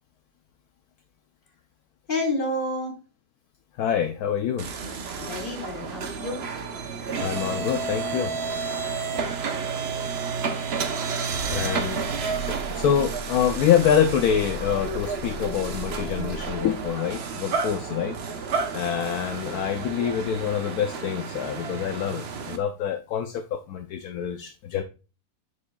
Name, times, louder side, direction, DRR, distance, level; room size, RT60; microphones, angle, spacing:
voice 1, 2.1-3.0 5.2-6.5, left 2 dB, 30° left, 0 dB, 2.1 m, -29 dB
voice 2, 3.8-4.7 7.2-8.3 11.5-12.0 12.5-18.2 18.7-24.8, left 8 dB, 70° left, 7 dB, 1.1 m, -26 dB
sound 1, 4.6-22.6, right 4 dB, 50° right, 0.8 m, -31 dB
7.3 x 6.5 x 2.3 m, 0.32 s
omnidirectional pair, 1.8 m